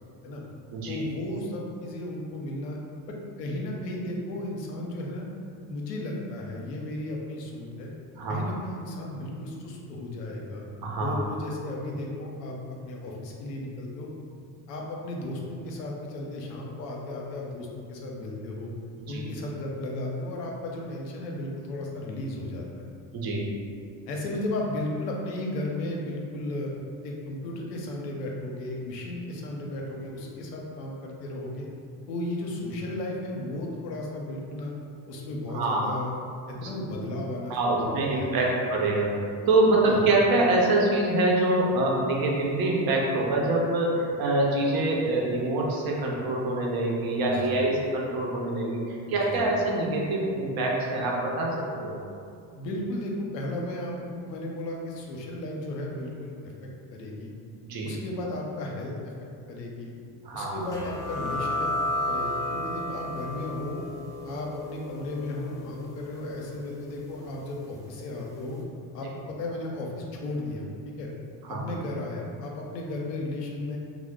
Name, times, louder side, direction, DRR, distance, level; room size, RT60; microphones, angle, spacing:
voice 1, 0.9-2.8 3.1-5.3 5.7-7.9 8.3-10.6 11.0-14.1 14.7-18.7 19.1-22.9 24.1-26.7 27.0-31.7 32.1-34.7 35.1-36.1 36.5-38.3 39.8-40.1 47.2-47.6 49.1-49.5 52.5-57.3 57.8-58.9 59.5-59.9 60.3-61.7 62.1-63.8 64.2-68.6 68.9-71.1 71.5-73.8, left 1 dB, 85° left, -1 dB, 0.6 m, -34 dB
voice 2, 10.8-11.1 19.0-19.2 23.1-23.6 35.5-35.9 37.5-39.2 39.5-52.0 57.6-57.9 60.2-60.6 71.5-71.6, right 2 dB, 50° right, -2 dB, 0.8 m, -25 dB
sound 1, 60.7-68.0, left 1 dB, 10° left, 0.4 m, -33 dB
2.8 x 2.0 x 3.4 m, 2.3 s
hypercardioid pair, 60°, 47 cm